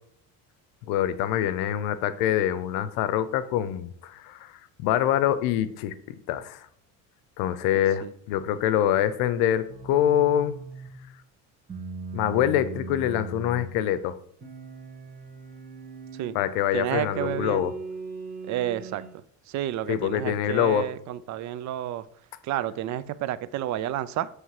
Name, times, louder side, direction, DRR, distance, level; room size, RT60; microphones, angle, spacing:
voice 1, 0.9-6.7 7.4-10.5 12.1-14.2 16.3-17.7 19.9-20.9, left 11 dB, 85° left, 14 dB, 0.7 m, -25 dB
sound 1, 9.7-11.0 11.7-13.8 14.4-16.4 17.2-19.1, right 3 dB, 25° right, 1.5 m, -38 dB
voice 2, 16.7-17.7 18.5-19.0 19.5-22.0 22.4-24.3, right 12 dB, 55° right, 16 dB, 0.5 m, -30 dB
7.2 x 3.3 x 4.7 m, 0.68 s
cardioid pair, 115°, 35 cm